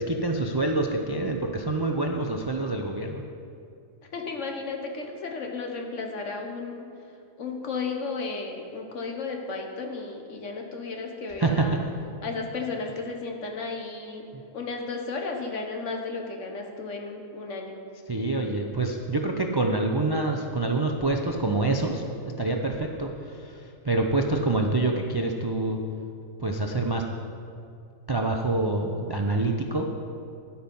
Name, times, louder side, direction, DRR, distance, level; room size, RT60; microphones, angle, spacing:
voice 1, 0.0-3.2 11.4-11.6 18.1-22.0 22.4-25.8 26.4-27.0 28.1-29.9, right 2 dB, 40° right, 2 dB, 0.3 m, -26 dB
voice 2, 4.1-6.9 7.4-11.8 12.2-14.2 14.5-17.8, left 4 dB, 60° left, 2 dB, 1.5 m, -34 dB
11.0 x 8.7 x 5.4 m, 2.5 s
omnidirectional pair, 1.4 m